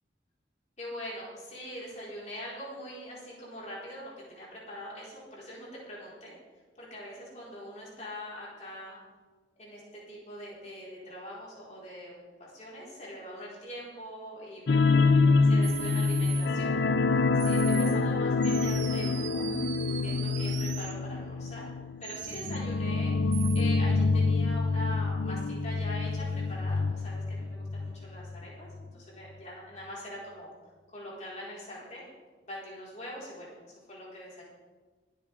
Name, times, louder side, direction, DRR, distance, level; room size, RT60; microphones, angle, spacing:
voice 1, 0.8-6.3 6.8-9.0 9.6-12.1 12.4-14.8 15.4-16.8 17.3-19.5 20.0-21.7 22.0-30.5 30.9-32.1 32.4-33.5 33.9-34.4, equal, 40° left, -6 dB, 4.6 m, -43 dB
sound 1, 14.7-27.9 28.2-28.4 28.8-28.9, left 3 dB, 65° left, 0.5 m, -26 dB
sound 2, 15.6-16.5 17.4-18.0 18.4-20.9 22.0-22.6 23.3-23.6, right 10 dB, 85° right, 1.1 m, -40 dB
22.5 x 8.4 x 3.6 m, 1.4 s
head